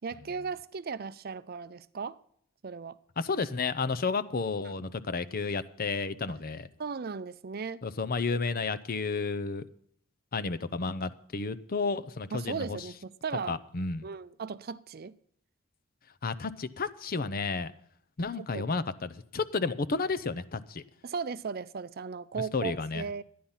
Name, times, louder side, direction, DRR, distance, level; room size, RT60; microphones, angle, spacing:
voice 1, 0.0-2.2 2.6-3.0 6.8-7.8 12.3-13.6 14.0-15.1 18.4-18.6 21.0-23.2, right 5 dB, 45° right, 0.5 m, -37 dB
voice 2, 3.2-6.7 7.8-9.6 10.3-12.8 13.5-14.0 16.2-17.7 18.2-20.8 22.5-23.0, left 4 dB, 45° left, 0.6 m, -32 dB
13.0 x 10.5 x 5.5 m
head